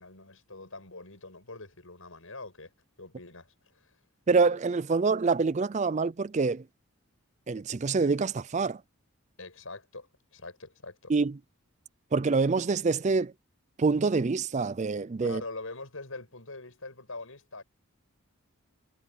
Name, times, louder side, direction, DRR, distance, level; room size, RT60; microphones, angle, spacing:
voice 1, 0.0-2.7 3.0-3.9 9.4-11.1 15.2-17.6, left 3 dB, 70° left, 6.2 m, -43 dB
voice 2, 4.3-6.6 7.5-8.8 11.1-11.3 12.1-13.3 13.8-15.4, right 4 dB, 35° right, 0.4 m, -26 dB
head